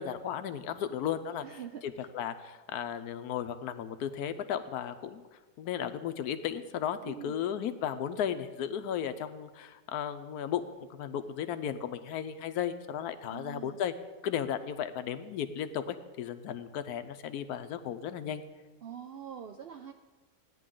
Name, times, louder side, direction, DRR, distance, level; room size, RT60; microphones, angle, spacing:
voice 1, 0.0-1.4 1.8-5.2 5.6-10.6 10.9-13.9 14.2-18.4, left 9 dB, 80° left, 10 dB, 1.2 m, -35 dB
voice 2, 1.4-2.1 7.0-7.4 13.2-13.8 18.8-19.9, right 8 dB, 80° right, 5 dB, 0.5 m, -44 dB
15.5 x 10.0 x 3.8 m, 1.3 s
omnidirectional pair, 1.7 m